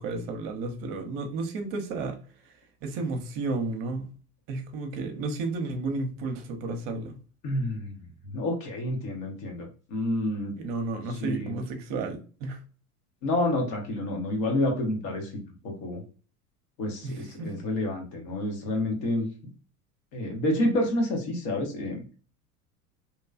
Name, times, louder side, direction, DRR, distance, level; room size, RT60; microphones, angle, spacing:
voice 1, 0.0-2.2 2.4-4.1 4.5-7.2 10.6-12.6 17.0-17.5, right 3 dB, 50° right, 5 dB, 0.7 m, -32 dB
voice 2, 7.4-10.5 11.1-11.6 13.2-16.0 16.8-19.3 20.1-22.0, left 1 dB, 55° left, 1 dB, 1.2 m, -29 dB
2.9 x 2.3 x 2.4 m, 0.37 s
hypercardioid pair, 85°, 44 cm